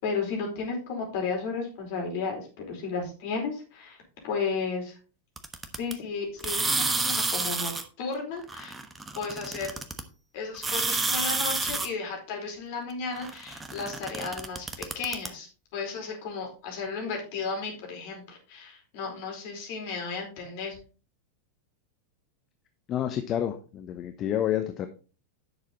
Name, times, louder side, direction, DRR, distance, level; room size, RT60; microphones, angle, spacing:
voice 1, 0.0-4.0 4.2-4.9 5.8-7.7 8.0-8.7 9.1-9.8 10.3-20.8, left 4 dB, 50° left, 1 dB, 4.5 m, -34 dB
sound 1, 5.4-5.9 6.4-7.8 8.5-10.0 10.5-11.9 13.1-15.3, right 3 dB, 15° right, 1.1 m, -29 dB
voice 2, 22.9-24.9, left 10 dB, 30° left, 8 dB, 0.9 m, -29 dB
10.0 x 6.7 x 4.1 m, 0.36 s
figure-of-eight pair, 90°, 0 cm